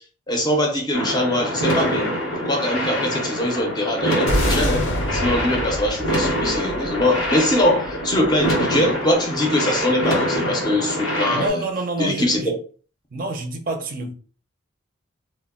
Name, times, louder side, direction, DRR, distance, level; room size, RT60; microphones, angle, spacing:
voice 1, 0.3-2.1 2.4-4.9 5.1-11.7 12.0-12.4, left 1 dB, 20° left, 0.5 m, -22 dB
sound 1, 0.9-11.5, equal, 85° left, 1.0 m, -25 dB
sound 2, 4.3-8.7, left 1 dB, 70° left, 0.7 m, -27 dB
voice 2, 11.3-12.5 13.1-14.1, right 2 dB, 45° right, 0.4 m, -27 dB
2.2 x 2.0 x 3.6 m
head